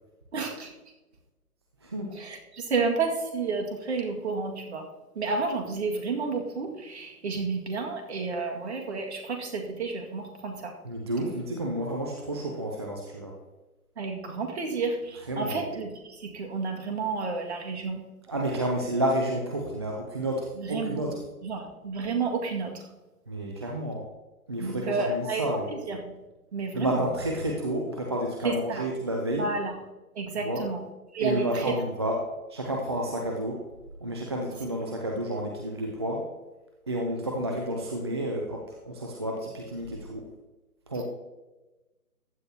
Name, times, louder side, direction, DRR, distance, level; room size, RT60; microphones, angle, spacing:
voice 1, 0.3-0.7 2.2-4.9 5.2-10.7 14.0-15.9 16.2-18.0 18.4-18.6 20.6-21.1 21.4-22.7 24.6-25.6 25.9-26.1 26.5-27.0 28.4-28.8 29.4-29.7 30.2-30.8 31.1-31.7, right 4 dB, 45° right, 3 dB, 2.0 m, -31 dB
voice 2, 1.8-2.1 10.8-13.3 15.3-15.6 18.3-21.2 23.3-24.0 24.5-25.7 26.7-29.5 30.4-30.7 31.2-33.6 34.0-36.3 36.9-40.2 40.9-41.0, right 1 dB, 20° right, 0 dB, 0.6 m, -30 dB
15.0 x 9.9 x 2.8 m, 1.1 s
figure-of-eight pair, 140°, 44 cm